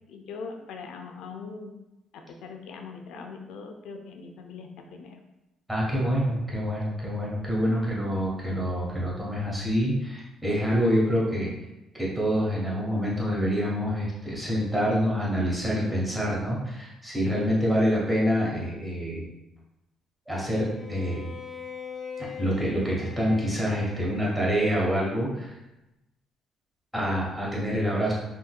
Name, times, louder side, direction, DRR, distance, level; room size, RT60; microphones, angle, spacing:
voice 1, 0.1-1.7 2.1-5.2, left 4 dB, 80° left, 4 dB, 0.4 m, -41 dB
voice 2, 5.7-11.5 12.0-19.2 20.3-21.2 22.2-25.6 26.9-28.1, equal, 5° right, -5 dB, 1.0 m, -26 dB
Bowed string instrument, 20.7-25.1, left 5 dB, 55° left, 0.7 m, -42 dB
3.7 x 2.7 x 2.2 m, 0.97 s
cardioid pair, 115°, 0 cm